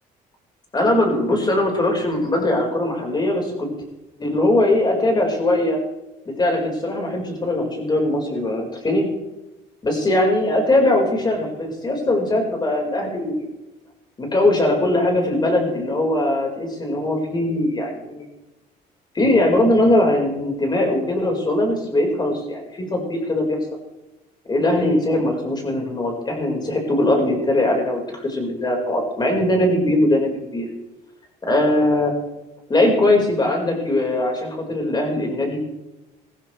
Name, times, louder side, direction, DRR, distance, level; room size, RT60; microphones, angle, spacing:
voice 1, 0.7-3.7 4.2-5.8 6.2-9.1 9.8-13.4 14.2-18.2 19.1-23.6 24.5-30.7 31.4-32.1 32.7-35.6, left 1 dB, 25° left, 1 dB, 4.9 m, -20 dB
17.5 x 15.0 x 3.4 m, 0.99 s
cardioid pair, 110°, 17 cm